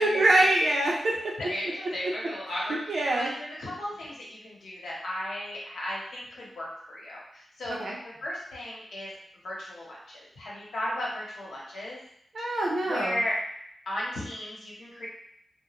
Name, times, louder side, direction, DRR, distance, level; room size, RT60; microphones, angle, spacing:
voice 1, 0.0-1.3 2.0-2.1 2.6-3.3 7.7-8.0 12.3-13.2, right 2 dB, 70° right, -3 dB, 0.7 m, -25 dB
voice 2, 1.1-7.9 8.2-9.1 9.4-10.0 10.4-12.0 12.8-13.4 13.9-15.1, left 1 dB, 85° left, -6 dB, 1.0 m, -35 dB
2.2 x 2.2 x 3.0 m, 0.71 s
cardioid pair, 50°, 0 cm